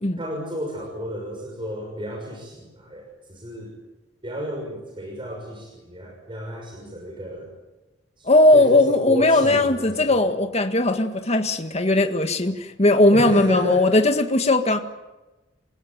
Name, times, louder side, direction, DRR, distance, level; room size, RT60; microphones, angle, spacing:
voice 1, 0.2-3.0 3.3-3.7 4.2-7.5 8.2-10.2 13.1-13.8, equal, 25° right, -1 dB, 6.2 m, -32 dB
voice 2, 8.3-14.8, left 2 dB, 35° left, 6 dB, 1.8 m, -18 dB
28.0 x 17.0 x 9.3 m, 1.1 s
head